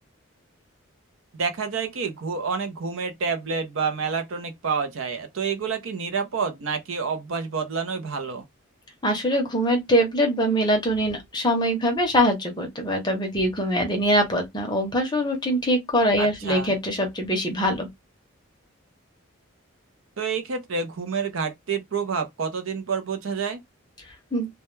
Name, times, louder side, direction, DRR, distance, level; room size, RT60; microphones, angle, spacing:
voice 1, 1.4-8.4 16.2-16.7 20.2-23.6, right 5 dB, 70° right, 0.5 m, -28 dB
voice 2, 9.0-17.9 24.3-24.5, equal, 20° left, 0.6 m, -23 dB
2.1 x 2.1 x 3.0 m
head